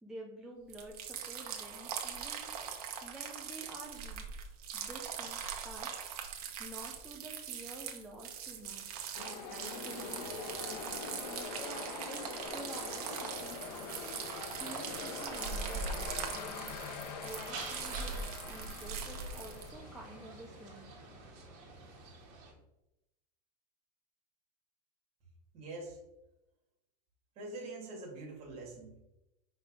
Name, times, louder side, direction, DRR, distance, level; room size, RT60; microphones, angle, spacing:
voice 1, 0.0-4.2 4.7-21.0, right 1 dB, ahead, -3 dB, 0.4 m, -50 dB
sound 1, 0.7-19.7, right 7 dB, 70° right, 1.2 m, -41 dB
sound 2, 9.1-22.1, left 5 dB, 90° left, 1.1 m, -44 dB
sound 3, 17.2-22.5, right 4 dB, 50° right, 1.9 m, -49 dB
voice 2, 25.5-26.0 27.4-29.0, right 2 dB, 30° right, -3 dB, 2.0 m, -44 dB
5.6 x 4.0 x 4.9 m, 0.90 s
supercardioid pair, 170°, 20 cm